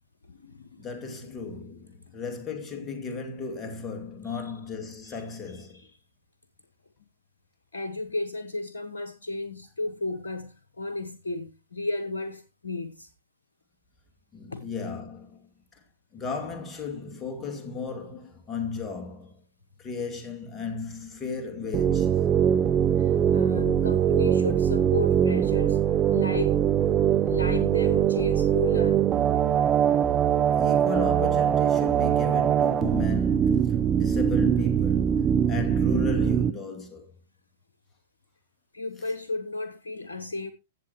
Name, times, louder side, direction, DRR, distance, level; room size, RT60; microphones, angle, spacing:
voice 1, 0.3-1.5 4.3-4.4 5.1-5.2 5.5-5.9 7.7-13.1 14.5-14.7 23.0-25.8 26.1-26.6 27.2-29.1 38.7-40.5, left 2 dB, 80° left, 1.0 m, -34 dB
voice 2, 0.8-5.9 14.3-15.8 16.1-19.4 19.8-22.3 30.6-37.1 39.0-39.1, left 4 dB, 25° left, 2.5 m, -35 dB
sound 1, 21.7-36.5, right 9 dB, 25° right, 0.7 m, -22 dB
16.0 x 7.3 x 3.0 m
hypercardioid pair, 115°, 0 cm